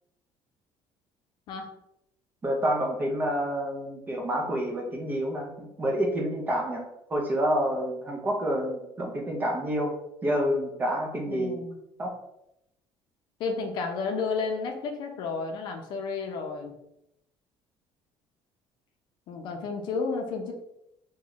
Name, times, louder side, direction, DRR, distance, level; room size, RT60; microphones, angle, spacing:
voice 1, 2.4-6.8 7.1-9.9 10.2-11.6 12.0-12.1, equal, 20° right, 0 dB, 0.5 m, -28 dB
voice 2, 11.3-11.8 13.4-16.7 19.3-20.5, left 4 dB, 55° left, 3 dB, 0.5 m, -32 dB
3.0 x 2.2 x 3.8 m, 0.81 s
cardioid pair, 175°, 9 cm